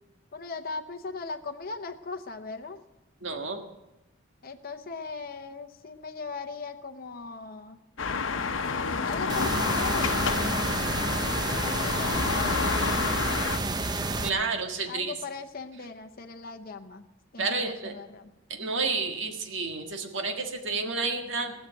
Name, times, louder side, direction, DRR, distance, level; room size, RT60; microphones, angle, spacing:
voice 1, 0.3-2.8 4.4-7.8 9.0-10.8 11.6-13.4 14.9-17.1 17.3-18.3, left 4 dB, 50° left, 5 dB, 0.8 m, -39 dB
voice 2, 3.2-3.6 14.2-15.1 17.4-17.9 18.6-21.5, right 4 dB, 70° right, 4 dB, 1.7 m, -30 dB
sound 1, 8.0-13.6, left 4 dB, 75° left, 0.9 m, -29 dB
sound 2, 9.3-14.3, right 2 dB, 20° right, 0.6 m, -30 dB
19.0 x 6.6 x 9.1 m, 0.95 s
head